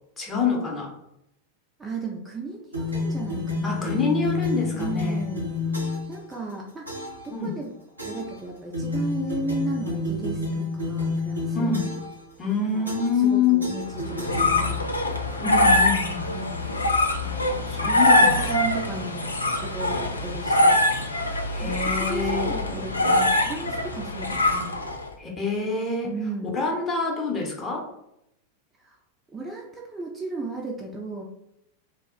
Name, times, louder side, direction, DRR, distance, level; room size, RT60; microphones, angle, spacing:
voice 1, 0.2-0.9 3.6-5.2 7.3-7.6 11.5-11.9 12.4-13.6 15.4-16.3 17.7-18.4 21.5-22.5 25.2-26.1 26.5-27.9, left 5 dB, 20° left, -2 dB, 0.7 m, -26 dB
voice 2, 1.8-4.0 4.8-7.7 8.0-11.7 12.7-12.9 13.2-14.9 16.3-16.8 17.2-20.8 21.6-24.7 26.0-26.6 28.8-29.0 29.3-31.2, right 2 dB, 15° right, -1 dB, 0.4 m, -35 dB
sound 1, 2.7-6.2 6.9-7.3 8.0-8.4 8.7-12.2 12.9-13.3 13.6-14.9, left 3 dB, 85° right, 0.7 m, -29 dB
sound 2, 13.9-25.1, left 1 dB, 80° left, 0.3 m, -23 dB
2.3 x 2.0 x 3.6 m, 0.81 s
figure-of-eight pair, 90°, 0 cm